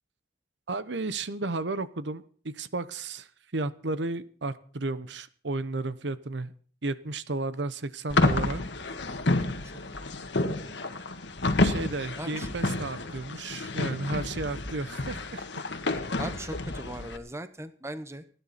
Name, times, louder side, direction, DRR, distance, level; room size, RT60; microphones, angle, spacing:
voice 1, 0.7-6.5 6.8-8.6 11.6-15.5, right 2 dB, 75° right, 14 dB, 1.0 m, -33 dB
sound 1, 8.1-17.2, left 2 dB, 70° left, 1.6 m, -29 dB
voice 2, 12.2-12.5 16.2-18.2, right 1 dB, 15° right, 11 dB, 0.8 m, -38 dB
30.0 x 10.0 x 4.2 m, 0.43 s
head